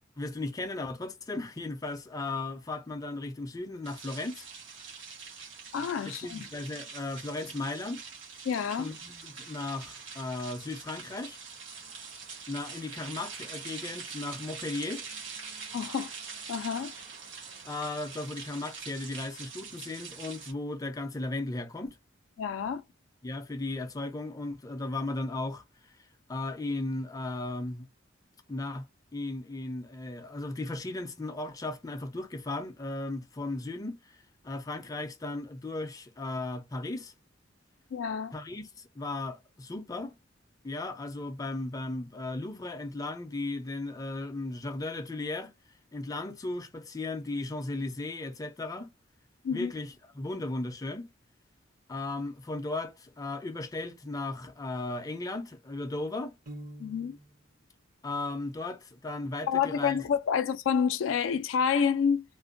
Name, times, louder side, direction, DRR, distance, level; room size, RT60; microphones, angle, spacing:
voice 1, 0.2-4.5 6.0-8.0 8.8-11.4 12.5-15.0 17.6-22.0 23.2-25.6 26.3-27.9 28.5-28.9 29.1-34.0 34.4-37.1 38.3-40.2 40.6-45.5 45.9-48.9 49.5-51.1 51.9-56.4 58.0-60.0, left 2 dB, 20° left, 0.4 m, -36 dB
sound 1, 3.8-20.5, right 5 dB, 70° right, 1.2 m, -44 dB
voice 2, 5.7-6.5 8.5-8.9 15.7-16.1 16.5-16.9 22.4-22.8 37.9-38.3 49.4-49.7 56.8-57.2 59.5-62.2, left 7 dB, 85° left, 0.3 m, -28 dB
Piano, 56.5-57.4, right 1 dB, 45° right, 0.7 m, -45 dB
2.5 x 2.1 x 2.5 m
head